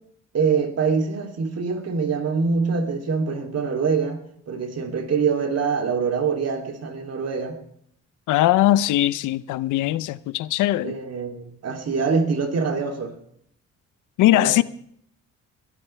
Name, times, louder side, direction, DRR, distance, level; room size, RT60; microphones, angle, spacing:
voice 1, 0.3-4.2 4.5-7.6 10.8-13.1 14.3-14.6, right 5 dB, 55° right, 3.0 m, -24 dB
voice 2, 8.3-11.0 14.2-14.6, left 14 dB, 90° left, 0.6 m, -20 dB
21.0 x 13.0 x 3.3 m
cardioid pair, 90°, 30 cm